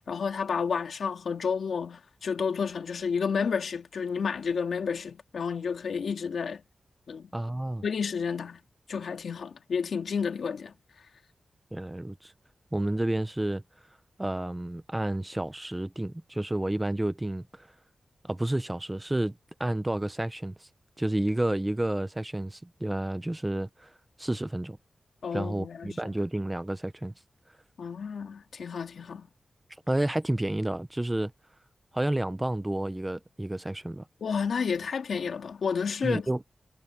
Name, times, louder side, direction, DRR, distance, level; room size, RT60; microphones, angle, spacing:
voice 1, 0.1-6.6 7.1-7.3 7.8-8.6 8.9-10.7 25.2-26.1 27.8-29.3 34.2-36.3, left 6 dB, 75° left, 2.4 m, -31 dB
voice 2, 7.3-7.8 11.7-12.3 12.7-13.6 14.2-17.7 18.2-19.3 19.6-20.7 21.0-23.9 24.2-24.8 25.3-27.1 29.9-31.3 31.9-34.0 36.0-36.4, right 1 dB, 10° right, 0.7 m, -30 dB
wide cardioid pair, 155°, 0 cm